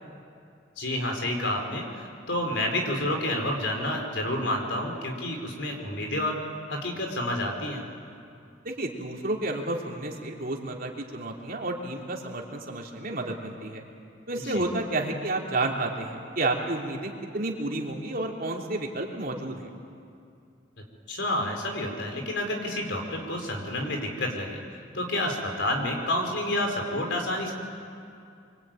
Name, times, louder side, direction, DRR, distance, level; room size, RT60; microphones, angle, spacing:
voice 1, 0.8-6.4 6.7-7.8 14.4-14.7 21.1-24.6 24.9-27.5, left 1 dB, 70° left, 3 dB, 4.4 m, -29 dB
voice 2, 8.6-13.8 14.3-19.7, right 2 dB, 50° right, 0 dB, 3.1 m, -31 dB
24.5 x 24.0 x 9.1 m, 2.4 s
head